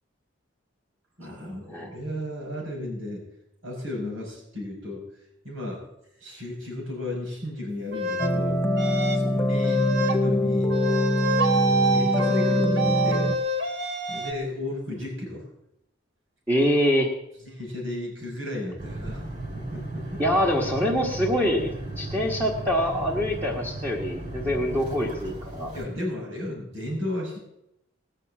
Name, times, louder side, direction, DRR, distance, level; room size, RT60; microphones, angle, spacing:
voice 1, 1.2-3.2 3.6-5.1 5.4-5.8 6.2-8.6 9.1-10.7 11.4-13.3 14.1-15.5 17.4-19.2 19.5-20.2 25.7-27.4, left 1 dB, 85° right, -1 dB, 5.4 m, -34 dB
sound 1, 7.9-8.3 8.8-9.3 9.6-10.2 10.7-14.3, right 1 dB, 55° right, 1.3 m, -26 dB
sound 2, 8.2-13.4, left 1 dB, 10° left, 0.6 m, -24 dB
voice 2, 16.5-17.1 20.2-25.7, equal, 15° right, -3 dB, 1.5 m, -25 dB
sound 3, 18.8-25.9, right 2 dB, 40° right, 4.4 m, -36 dB
19.0 x 6.7 x 7.5 m, 0.82 s
head